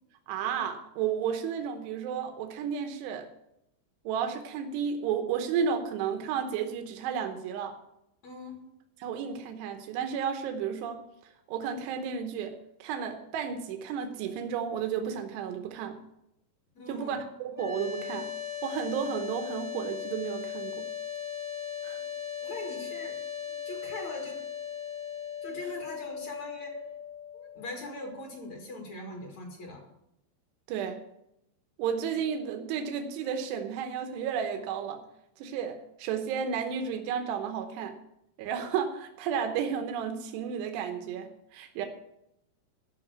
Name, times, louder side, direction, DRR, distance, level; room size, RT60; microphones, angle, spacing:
voice 1, 0.3-3.3 4.0-7.7 9.0-11.0 11.5-12.5 12.8-16.0 16.9-18.3 18.6-20.9 21.8-22.0 30.7-31.0 31.8-35.0 35.4-38.0 38.4-41.9, right 7 dB, 85° right, 5 dB, 3.2 m, -32 dB
voice 2, 8.2-8.6 16.7-17.2 22.0-22.1 22.4-23.2 23.7-24.4 25.4-26.8 27.3-29.9, left 1 dB, 50° left, 1 dB, 2.8 m, -41 dB
sound 1, 17.5-28.6, left 9 dB, 10° right, 1.3 m, -38 dB
13.0 x 5.8 x 8.0 m, 0.81 s
omnidirectional pair, 4.8 m